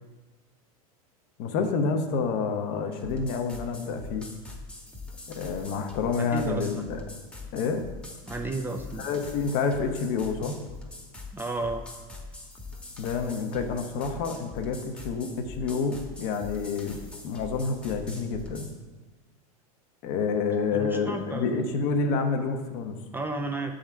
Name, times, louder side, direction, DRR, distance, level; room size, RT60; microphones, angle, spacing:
voice 1, 1.4-4.3 5.3-7.0 7.5-7.8 9.0-10.6 13.0-17.0 17.2-18.7 20.0-23.0, left 5 dB, 55° left, 5 dB, 0.9 m, -28 dB
sound 1, 2.9-18.8, left 3 dB, 5° left, 1.1 m, -43 dB
voice 2, 6.2-6.7 8.3-9.0 11.3-11.8 20.7-21.5 23.1-23.7, right 2 dB, 10° right, 4 dB, 0.4 m, -32 dB
7.1 x 3.8 x 4.4 m, 1.2 s
hypercardioid pair, 115°, 19 cm